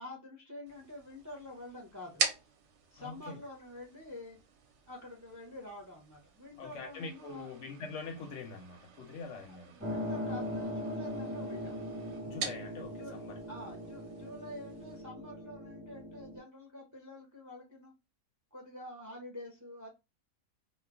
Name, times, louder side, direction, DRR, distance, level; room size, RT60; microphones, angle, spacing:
voice 1, 0.0-2.3 2.9-4.4 4.9-7.5 9.5-11.8 12.9-13.2 13.5-17.9 18.5-19.9, left 1 dB, 25° right, 0.4 m, -47 dB
sound 1, 0.7-15.0, right 5 dB, 65° right, 0.8 m, -44 dB
voice 2, 3.0-3.4 6.6-9.7 12.2-13.4 14.2-14.3, left 4 dB, 65° left, 0.8 m, -44 dB
sound 2, 9.8-16.4, equal, 10° right, 1.0 m, -40 dB
2.3 x 2.1 x 3.4 m
omnidirectional pair, 1.5 m